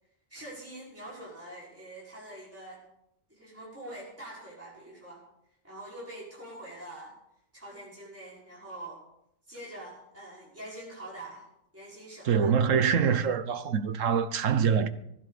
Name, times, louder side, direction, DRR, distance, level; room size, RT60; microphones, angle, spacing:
voice 1, 0.3-2.8 3.3-5.2 5.6-7.1 7.5-9.0 9.5-11.5 11.7-12.5, right 1 dB, 10° right, 5.3 m, -44 dB
voice 2, 12.2-14.9, right 7 dB, 85° right, 1.3 m, -25 dB
20.0 x 15.0 x 4.2 m
omnidirectional pair, 1.3 m